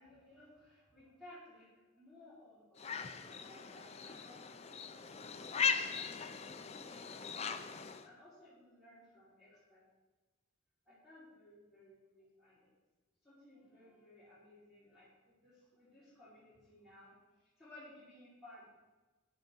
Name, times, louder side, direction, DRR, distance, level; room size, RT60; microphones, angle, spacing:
voice 1, 0.0-1.7 1.9-9.8 10.9-12.7 13.2-18.8, left 1 dB, 5° right, -11 dB, 4.3 m, -59 dB
sound 1, 2.8-8.1, left 6 dB, 30° left, 0.5 m, -39 dB
10.5 x 10.0 x 4.5 m, 1.2 s
head